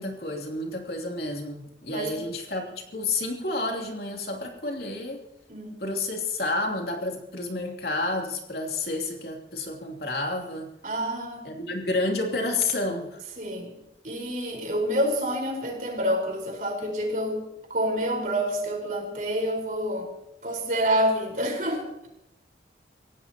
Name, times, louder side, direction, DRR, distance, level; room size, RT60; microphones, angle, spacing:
voice 1, 0.0-5.2 5.8-10.7 11.4-13.2, left 2 dB, 60° left, 1 dB, 2.9 m, -30 dB
voice 2, 10.8-11.5 13.4-13.7 14.0-17.4 17.7-20.1 20.4-22.1, equal, 45° right, 1 dB, 4.6 m, -28 dB
28.5 x 16.5 x 3.0 m, 0.88 s
head